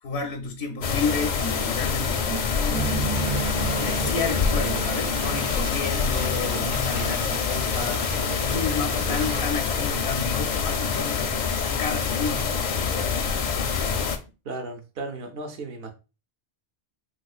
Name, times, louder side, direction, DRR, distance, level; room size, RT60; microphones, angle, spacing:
voice 1, 0.0-2.9 3.6-8.0 8.4-11.3 11.6-12.7, left 4 dB, 85° left, 0.9 m, -31 dB
sound 1, 0.8-14.2, left 6 dB, 55° left, 0.5 m, -26 dB
sound 2, 2.7-7.0, right 4 dB, 5° left, 0.3 m, -32 dB
sound 3, 3.2-9.5, right 2 dB, 35° right, 0.7 m, -36 dB
voice 2, 14.4-15.9, right 3 dB, 65° right, 0.9 m, -35 dB
3.4 x 3.1 x 2.3 m
omnidirectional pair, 1.1 m